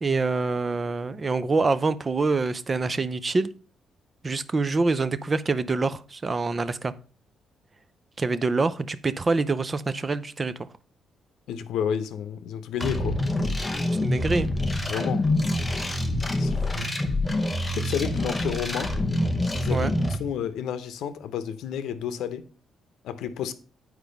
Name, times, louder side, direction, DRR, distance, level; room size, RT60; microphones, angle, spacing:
voice 1, 0.0-3.5 4.2-6.9 8.2-10.5 14.0-14.5 19.7-19.9, right 3 dB, 20° right, 0.4 m, -25 dB
voice 2, 11.5-13.2 14.8-15.3 16.4-16.9 17.7-19.0 19.5-22.5 23.0-23.5, left 8 dB, 85° left, 0.7 m, -31 dB
sound 1, 12.8-20.2, left 1 dB, 10° left, 0.7 m, -26 dB
8.9 x 4.6 x 5.2 m
cardioid pair, 170°, 0 cm